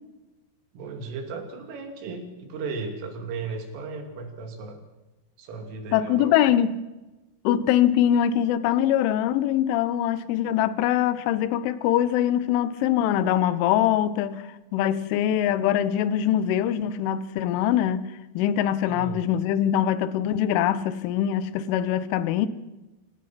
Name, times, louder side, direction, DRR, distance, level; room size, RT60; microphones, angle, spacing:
voice 1, 0.7-4.8 5.4-6.4 18.9-19.2, right 4 dB, 85° right, 5.2 m, -35 dB
voice 2, 5.9-6.8 7.4-18.1 18.3-22.5, left 10 dB, 80° left, 3.4 m, -23 dB
27.0 x 17.5 x 5.9 m
omnidirectional pair, 5.6 m